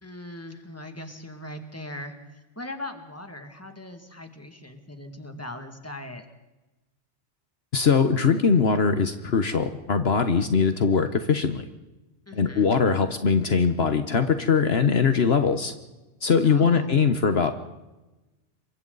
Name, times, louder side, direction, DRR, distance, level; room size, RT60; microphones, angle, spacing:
voice 1, 0.0-6.3 12.3-12.7 16.4-16.9, left 1 dB, 10° left, 5 dB, 2.1 m, -39 dB
voice 2, 7.7-11.6 12.3-15.7 16.2-17.6, left 5 dB, 60° left, 8 dB, 1.3 m, -21 dB
28.0 x 24.0 x 4.0 m, 1.1 s
omnidirectional pair, 1.2 m